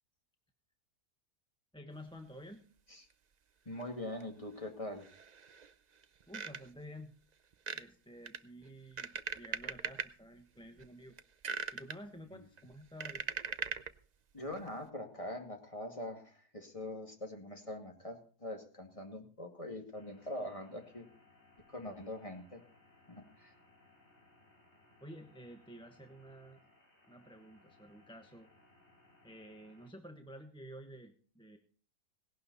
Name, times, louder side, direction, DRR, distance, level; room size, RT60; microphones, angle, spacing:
voice 1, 1.7-2.6 6.3-7.2 7.7-11.1 11.7-13.2 25.0-26.6 27.1-28.5 29.2-31.6, equal, 5° left, 5 dB, 1.0 m, -51 dB
voice 2, 3.7-5.1 12.3-12.4 14.3-21.1 21.7-22.6 23.1-23.5, left 1 dB, 20° left, 3 dB, 2.3 m, -43 dB
sound 1, 3.8-3.9 4.2-4.3 5.0-5.7 6.0-6.8 7.5-7.8 8.3-10.1 10.6-10.9 11.2-12.0 12.6-14.0 14.5-14.7, right 6 dB, 55° right, 0.4 m, -40 dB
sound 2, 19.9-29.9, left 2 dB, 45° left, 2.9 m, -65 dB
18.0 x 11.5 x 4.1 m, 0.41 s
omnidirectional pair, 1.7 m